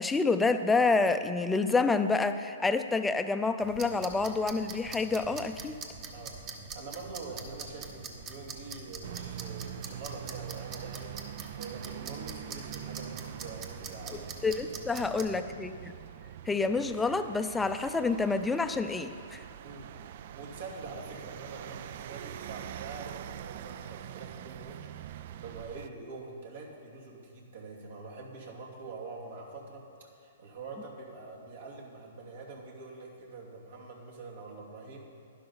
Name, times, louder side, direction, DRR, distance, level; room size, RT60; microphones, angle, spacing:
voice 1, 0.0-5.8 14.4-15.9 16.5-19.4, left 3 dB, 10° left, 9 dB, 0.5 m, -28 dB
sound 1, 3.6-15.4, right 5 dB, 30° right, 1.1 m, -44 dB
voice 2, 6.1-14.5 14.7-15.3 19.6-19.9 20.3-29.8 30.2-35.0, right 3 dB, 70° right, -2 dB, 2.5 m, -45 dB
sound 2, 9.0-25.9, right 11 dB, 55° right, 0.3 m, -44 dB
11.5 x 11.0 x 4.0 m, 2.5 s
hypercardioid pair, 130°, 0 cm